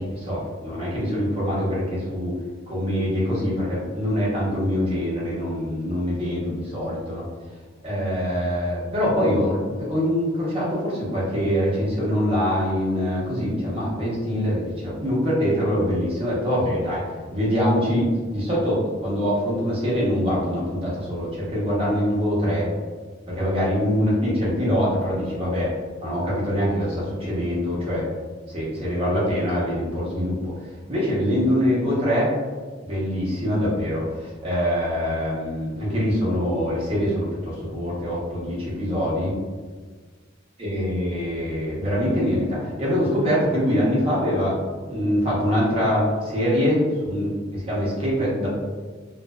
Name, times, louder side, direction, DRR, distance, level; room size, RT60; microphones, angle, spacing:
voice 1, 0.0-2.3 2.7-7.2 7.8-17.0 17.3-22.7 23.3-25.7 26.0-28.1 28.5-30.5 30.9-32.3 32.9-39.3 40.6-44.6 44.9-48.5, equal, 30° right, -7 dB, 0.9 m, -24 dB
2.5 x 2.2 x 2.2 m, 1.5 s
head